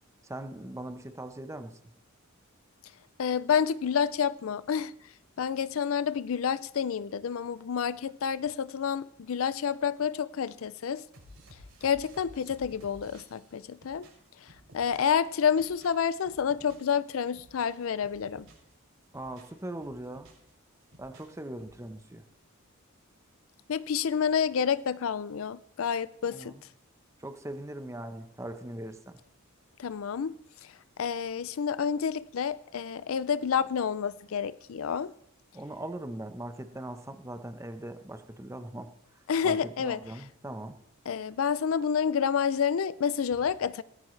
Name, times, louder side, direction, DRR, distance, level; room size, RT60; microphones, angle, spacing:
voice 1, 0.2-1.8 19.1-20.3 21.0-22.3 26.3-26.6 27.2-29.2 35.5-40.8, right 1 dB, 15° right, 0.9 m, -40 dB
voice 2, 3.2-4.9 5.4-11.0 11.8-14.1 14.7-18.5 23.7-26.5 29.8-30.4 30.6-30.7 31.0-35.1 39.3-40.0 41.1-43.8, left 7 dB, 70° left, 0.4 m, -29 dB
sound 1, 11.1-15.2 15.5-16.9 17.2-18.7 19.0-20.5 20.8-21.8, equal, 80° right, 6.1 m, -54 dB
17.5 x 14.0 x 3.3 m
head